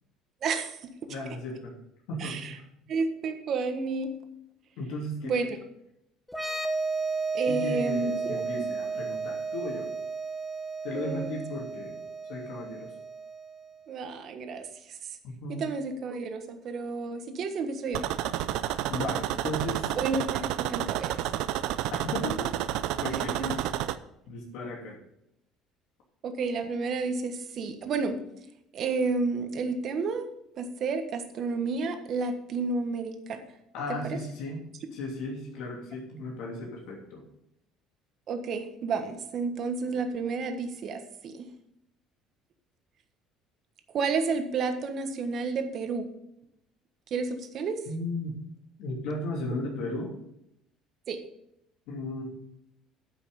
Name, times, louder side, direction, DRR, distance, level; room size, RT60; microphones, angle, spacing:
voice 1, 0.4-0.8 2.2-2.6 2.9-4.2 5.2-5.6 7.3-8.4 10.9-11.3 13.9-14.6 14.9-15.0 15.5-18.1 19.9-21.2 23.3-23.5 26.2-28.2 28.7-30.3 30.6-33.4 34.1-34.2 38.3-41.5 43.9-46.0 47.1-47.8 51.1-51.2, right 4 dB, 45° right, 7 dB, 1.3 m, -31 dB
voice 2, 1.1-1.7 2.1-2.7 4.8-5.3 7.4-9.9 10.8-11.9 12.3-12.9 15.2-15.7 18.9-19.9 21.9-22.5 23.0-23.7 24.3-25.0 33.7-34.6 34.9-37.2 47.9-48.3 48.8-50.1 51.9-52.2, left 1 dB, 75° left, -2 dB, 2.9 m, -35 dB
sound 1, 6.3-13.8, right 4 dB, 5° left, 1.2 m, -33 dB
sound 2, 17.9-24.0, right 13 dB, 70° right, 0.5 m, -30 dB
9.6 x 5.8 x 7.0 m, 0.79 s
cardioid pair, 145°, 0 cm